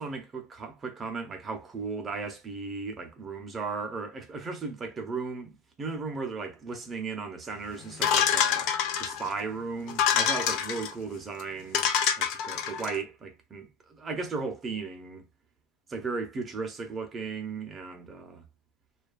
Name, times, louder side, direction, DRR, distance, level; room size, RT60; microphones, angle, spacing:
voice 1, 0.0-8.7 9.0-11.9 12.2-15.2 15.9-18.4, right 4 dB, 20° right, 0.5 m, -36 dB
sound 1, 8.0-9.3 9.9-10.9 11.4-11.5 11.7-12.9, left 8 dB, 45° left, 0.5 m, -26 dB
2.6 x 2.3 x 2.2 m
supercardioid pair, 160°, 0 cm